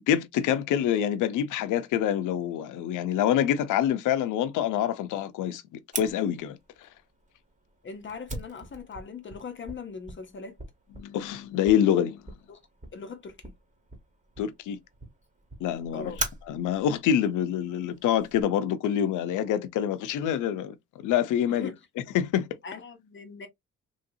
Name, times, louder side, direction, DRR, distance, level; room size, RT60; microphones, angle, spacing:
voice 1, 0.1-6.9 11.0-12.2 14.4-14.8 15.6-16.2 16.5-21.7 22.1-22.5, left 10 dB, 85° left, 0.6 m, -26 dB
Fire, 5.9-18.4, right 2 dB, 25° right, 1.2 m, -42 dB
voice 2, 7.8-10.6 12.5-12.6 12.9-13.5 15.9-16.2 21.5-21.8 22.6-23.5, left 5 dB, 40° left, 0.7 m, -40 dB
3.1 x 2.7 x 2.6 m
cardioid pair, 90°, 30 cm